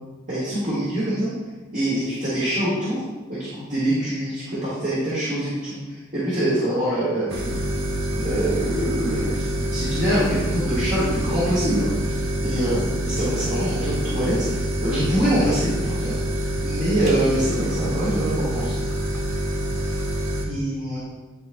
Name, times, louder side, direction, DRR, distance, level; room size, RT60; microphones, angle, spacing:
voice 1, 0.3-1.3 1.7-3.0 3.3-7.6 8.2-16.2 16.6-18.8 19.9-20.0 20.5-21.0, right 1 dB, 40° right, -10 dB, 1.8 m, -25 dB
sound 1, 7.3-20.4, right 1 dB, 80° right, 1.0 m, -26 dB
10.5 x 4.1 x 2.3 m, 1.2 s
head